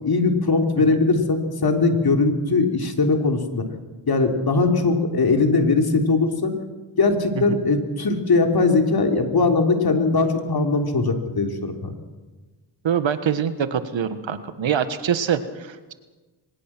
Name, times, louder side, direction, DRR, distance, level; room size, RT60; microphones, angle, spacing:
voice 1, 0.0-3.6 4.1-6.5 7.0-11.9, left 3 dB, 45° left, 4 dB, 3.4 m, -20 dB
voice 2, 12.8-15.9, right 8 dB, 65° right, 11 dB, 1.5 m, -24 dB
23.5 x 20.0 x 6.1 m, 1.3 s
cardioid pair, 65°, 50 cm